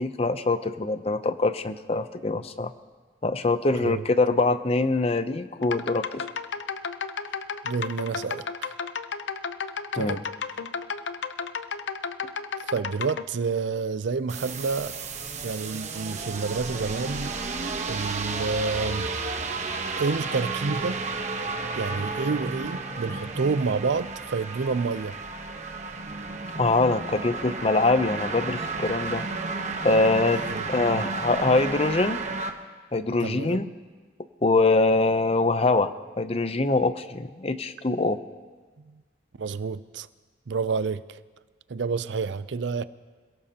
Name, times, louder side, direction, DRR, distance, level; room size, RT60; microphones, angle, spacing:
voice 1, 0.0-2.7 3.2-6.2 10.0-10.2 26.6-29.2 29.8-32.2 32.9-33.6 34.4-38.2, left 3 dB, 35° left, 0.6 m, -24 dB
voice 2, 3.7-4.0 7.6-8.7 9.9-10.2 12.7-15.0 15.4-17.4 17.9-19.1 20.0-21.0 21.7-25.2 30.5-30.6 30.9-31.1 33.2-33.7 38.8-39.0 39.4-40.1 40.5-41.2 41.7-42.8, right 4 dB, 85° right, 0.5 m, -29 dB
sound 1, 5.6-13.2, left 5 dB, 90° left, 0.6 m, -33 dB
sound 2, 14.3-32.5, right 3 dB, 40° right, 1.1 m, -32 dB
27.5 x 17.5 x 2.9 m
head